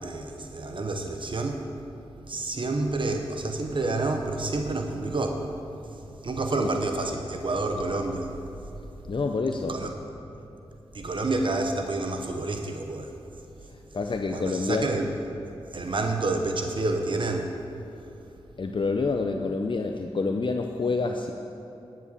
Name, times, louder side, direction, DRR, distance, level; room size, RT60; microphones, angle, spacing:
voice 1, 0.0-1.7 2.2-8.4 9.7-9.9 10.9-13.1 14.3-15.1 15.7-17.5, right 2 dB, 50° right, 4 dB, 1.0 m, -29 dB
voice 2, 9.1-9.7 13.9-14.9 18.6-21.3, left 4 dB, 50° left, 4 dB, 0.6 m, -27 dB
10.5 x 7.6 x 6.9 m, 2.8 s
cardioid pair, 65°, 11 cm